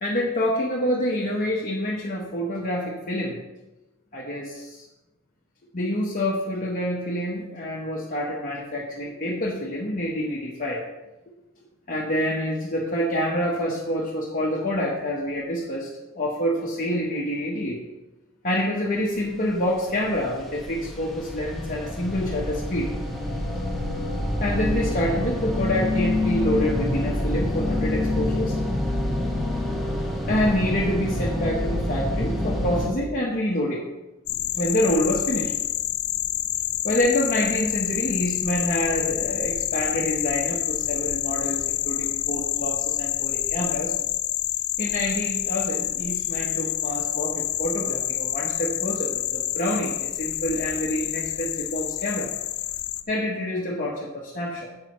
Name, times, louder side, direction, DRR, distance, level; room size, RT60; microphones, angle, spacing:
voice 1, 0.0-3.4 4.1-4.8 5.7-10.8 11.9-15.9 16.1-17.8 18.4-22.9 24.4-28.6 30.3-33.8 34.5-35.5 36.8-43.9 44.8-52.3 53.1-54.7, left 1 dB, 40° left, -4 dB, 1.2 m, -27 dB
sound 1, 19.7-32.9, left 1 dB, ahead, 1.2 m, -27 dB
sound 2, 34.3-53.0, left 13 dB, 75° left, 0.5 m, -28 dB
10.5 x 7.7 x 3.1 m, 1.0 s
head